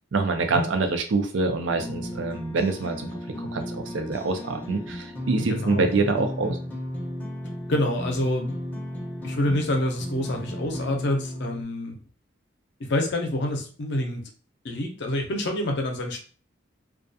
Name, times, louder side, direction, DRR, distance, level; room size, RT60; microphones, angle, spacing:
voice 1, 0.1-3.1 3.4-6.6, right 3 dB, 75° right, 6 dB, 0.4 m, -25 dB
sound 1, 1.6-11.6, left 1 dB, 10° left, 0.6 m, -34 dB
voice 2, 5.5-5.9 7.7-8.6 9.2-12.0 12.8-14.2 14.6-16.2, left 1 dB, 60° left, 3 dB, 0.6 m, -27 dB
2.3 x 2.3 x 2.6 m, 0.41 s
head